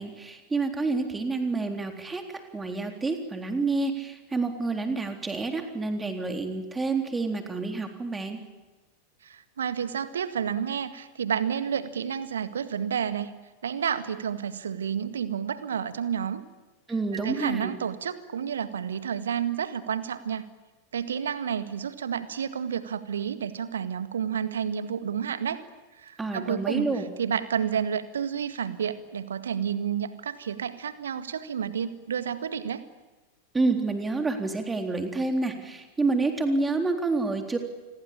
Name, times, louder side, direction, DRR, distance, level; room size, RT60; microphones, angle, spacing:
voice 1, 0.0-2.2 2.5-8.4 16.9-17.7 26.2-27.1 33.5-37.6, right 3 dB, 10° right, 5 dB, 3.8 m, -28 dB
voice 2, 9.2-13.3 13.6-16.4 17.1-20.5 20.9-25.6 26.0-32.8, right 8 dB, 65° right, 12 dB, 1.9 m, -30 dB
28.5 x 21.5 x 8.8 m, 1.2 s
figure-of-eight pair, 90°, 0 cm